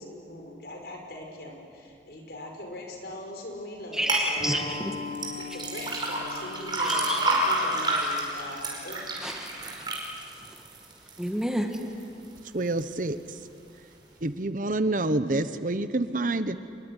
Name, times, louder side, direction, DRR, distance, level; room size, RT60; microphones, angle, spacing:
voice 1, 0.0-4.8 5.5-9.1, left 1 dB, 65° left, 2 dB, 5.7 m, -41 dB
voice 2, 3.9-4.9 6.8-7.2 9.2-9.7 11.2-11.7, equal, 5° right, 3 dB, 1.7 m, -30 dB
sound 1, 4.1-4.3 5.2-11.3 11.7-12.3 12.7-12.8, right 1 dB, 25° right, 5.3 m, -29 dB
Acoustic guitar, 4.4-9.6, left 4 dB, 30° left, 4.6 m, -41 dB
voice 3, 12.5-13.4 14.2-16.6, right 2 dB, 45° right, 12 dB, 1.0 m, -27 dB
27.0 x 22.0 x 9.9 m, 2.5 s
head